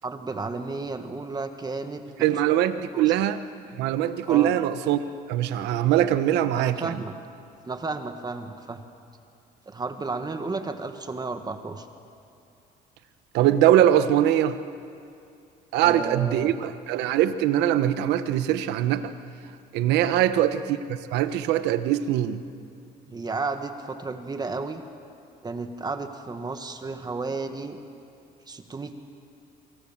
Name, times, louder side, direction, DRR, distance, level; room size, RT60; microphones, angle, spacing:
voice 1, 0.0-2.3 2.9-3.1 4.3-4.5 6.6-7.1 7.7-8.8 9.6-11.9 15.7-16.6 23.1-24.8 25.4-27.8 28.5-28.9, right 3 dB, 25° right, 7 dB, 1.7 m, -33 dB
voice 2, 2.2-3.4 3.8-5.0 5.3-7.0 13.3-14.6 15.7-19.1 19.7-20.8 21.1-22.4, right 12 dB, 90° right, 11 dB, 1.2 m, -22 dB
27.5 x 25.5 x 7.5 m, 2.5 s
cardioid pair, 110°, 17 cm